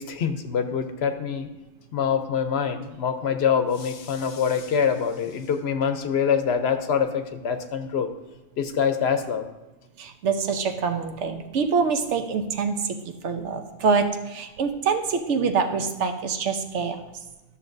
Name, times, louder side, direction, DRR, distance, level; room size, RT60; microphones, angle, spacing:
voice 1, 0.0-1.5 1.9-8.1 8.6-9.4, left 7 dB, 65° left, 8 dB, 0.9 m, -25 dB
voice 2, 10.0-12.8 13.2-17.0, right 5 dB, 75° right, 6 dB, 1.0 m, -25 dB
12.5 x 6.6 x 2.6 m, 1.1 s
omnidirectional pair, 1.2 m